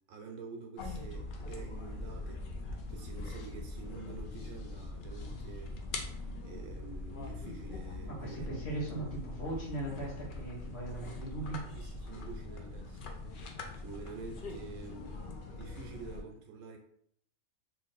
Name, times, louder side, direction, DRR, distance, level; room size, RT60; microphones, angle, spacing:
voice 1, 0.1-2.5 2.9-5.8 6.4-8.5 11.0-13.2 13.7-15.1 15.5-16.8, right 4 dB, 70° right, 2 dB, 0.9 m, -48 dB
sound 1, 0.8-16.2, left 2 dB, 70° left, 0.5 m, -42 dB
voice 2, 8.1-11.6, right 2 dB, 50° left, -5 dB, 1.3 m, -39 dB
3.1 x 2.4 x 3.9 m, 0.66 s
omnidirectional pair, 1.5 m